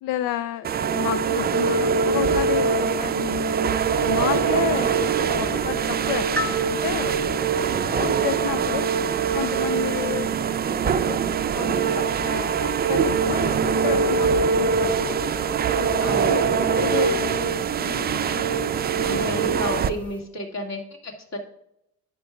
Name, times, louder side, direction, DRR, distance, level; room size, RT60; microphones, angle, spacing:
voice 1, 0.0-3.5 4.0-7.2 7.9-8.9 9.3-15.2 15.7-19.6, left 12 dB, 60° left, 14 dB, 0.5 m, -32 dB
sound 1, 0.6-19.9, right 6 dB, 25° right, 0.5 m, -23 dB
sound 2, 3.9-10.2, left 5 dB, 80° left, 1.0 m, -46 dB
sound 3, 4.1-20.2, left 1 dB, 5° left, 1.2 m, -42 dB
voice 2, 16.0-16.4 19.0-21.4, equal, 40° left, 2 dB, 2.2 m, -32 dB
11.5 x 8.7 x 2.4 m, 0.77 s
figure-of-eight pair, 50°, 39 cm